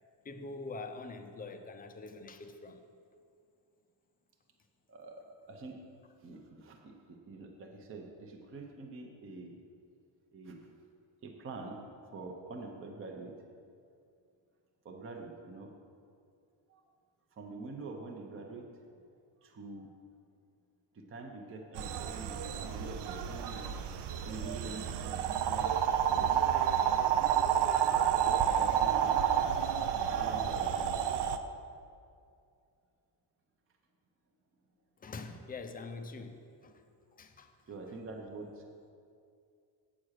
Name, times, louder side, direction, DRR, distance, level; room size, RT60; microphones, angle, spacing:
voice 1, 0.2-2.8 35.0-36.8 37.1-37.5, left 3 dB, 20° left, 7 dB, 0.4 m, -44 dB
voice 2, 4.9-5.8 6.2-9.6 10.3-10.7 11.2-11.8 12.1-13.3 14.8-15.7 16.7-16.8 17.4-18.7 19.4-19.9 20.9-23.7 24.2-25.8 26.1-26.4 28.2-29.2 30.1-30.9 37.7-38.6, right 3 dB, 30° right, 2 dB, 0.7 m, -45 dB
sound 1, 21.8-31.4, right 9 dB, 65° right, 0.6 m, -30 dB
8.5 x 6.1 x 6.4 m, 2.4 s
cardioid pair, 175°, 45 cm